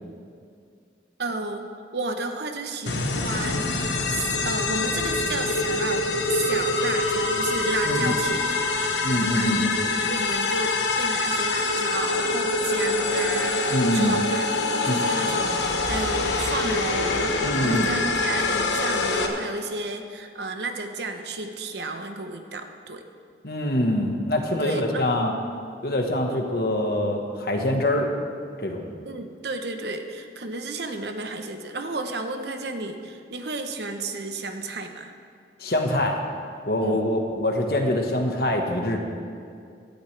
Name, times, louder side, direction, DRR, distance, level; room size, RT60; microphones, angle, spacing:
voice 1, 1.2-8.7 9.0-23.0 24.6-25.1 26.3-26.4 29.0-35.1 36.8-37.0, right 2 dB, 70° right, 6 dB, 1.0 m, -32 dB
sound 1, 2.9-19.3, left 3 dB, 85° left, 1.2 m, -25 dB
voice 2, 9.0-9.8 13.7-14.2 14.8-14.9 17.4-17.9 23.4-25.3 25.8-28.1 28.6-28.9 35.6-36.2 36.7-39.0, left 1 dB, 55° left, 2 dB, 1.4 m, -24 dB
17.5 x 12.0 x 3.4 m, 2.3 s
head